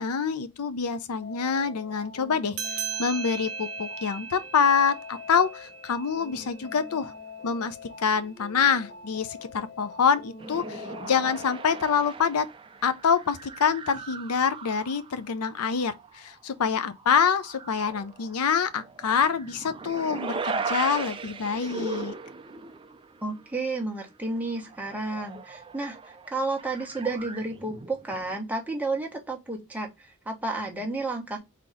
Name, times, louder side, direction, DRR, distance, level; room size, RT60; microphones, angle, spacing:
voice 1, 0.0-2.6 3.0-7.1 7.4-12.5 12.8-22.1, left 6 dB, 85° left, 0.5 m, -26 dB
sound 1, 1.2-12.0, left 5 dB, 40° left, 0.8 m, -44 dB
sound 2, 2.5-7.4, right 7 dB, 75° right, 0.9 m, -38 dB
sound 3, 10.4-15.3 15.7-16.3 16.9-23.5 23.8-23.9 24.1-28.3, right 4 dB, 25° right, 0.4 m, -39 dB
voice 2, 23.2-31.4, right 2 dB, 5° right, 1.0 m, -31 dB
3.9 x 2.9 x 4.8 m
head